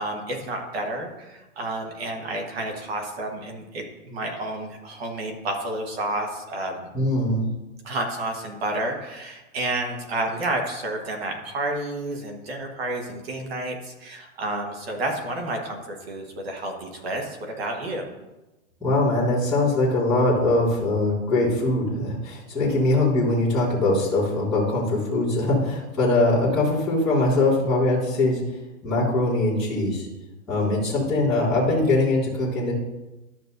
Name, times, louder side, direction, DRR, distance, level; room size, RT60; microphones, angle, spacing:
voice 1, 0.0-6.9 7.8-15.8 16.1-18.1, right 2 dB, 45° right, 2 dB, 1.5 m, -30 dB
voice 2, 6.9-7.4 18.8-28.4 28.8-30.1 30.5-32.7, left 2 dB, ahead, -22 dB, 0.4 m, -22 dB
12.0 x 6.7 x 2.6 m, 1.1 s
hypercardioid pair, 170°, 41 cm